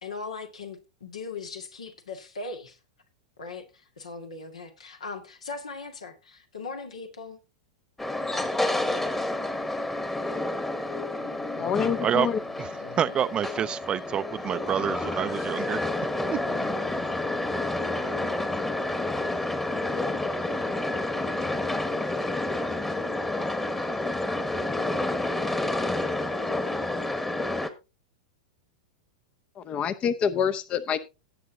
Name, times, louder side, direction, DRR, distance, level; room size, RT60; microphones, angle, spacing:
voice 1, 0.0-2.8 3.4-7.4, left 4 dB, 80° left, 1.9 m, -39 dB
sound 1, 8.0-27.7, left 2 dB, 10° left, 1.2 m, -29 dB
sound 2, 10.2-17.8 18.0-19.3 19.8-20.3, left 9 dB, 65° left, 5.5 m, -44 dB
voice 2, 11.6-12.4 29.7-31.0, left 7 dB, 30° left, 0.7 m, -26 dB
voice 3, 12.6-15.8 16.3-16.4, right 9 dB, 25° right, 0.5 m, -28 dB
17.5 x 7.5 x 2.7 m
hypercardioid pair, 100°, 3 cm